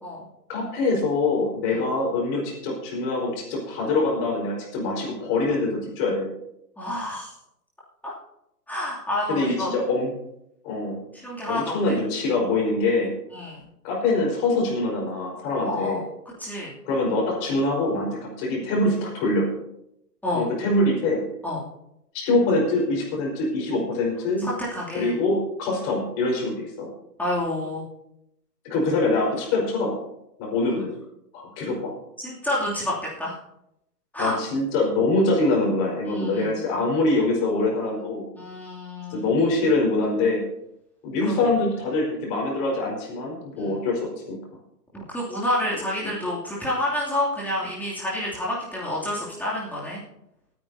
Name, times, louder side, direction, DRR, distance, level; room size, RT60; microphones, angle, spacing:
voice 1, 0.5-6.3 9.3-10.1 10.6-11.0 11.5-13.1 13.8-16.0 16.8-19.5 20.3-21.2 22.1-24.5 24.9-26.9 28.6-30.0 30.4-31.0 31.3-31.9 34.2-38.2 39.1-40.4 41.0-44.4 46.0-46.1, left 2 dB, 30° left, -1 dB, 4.8 m, -24 dB
voice 2, 6.8-7.3 8.0-8.1 8.7-9.7 11.1-12.0 13.3-13.7 15.6-16.1 16.4-16.7 20.2-20.4 21.4-21.6 24.4-25.1 27.2-27.8 32.2-33.4 34.1-34.4 36.1-36.6 38.3-39.3 41.2-41.5 43.5-43.8 44.9-50.0, left 1 dB, 5° left, -7 dB, 2.7 m, -29 dB
28.5 x 9.5 x 2.8 m, 0.82 s
figure-of-eight pair, 130°, 49 cm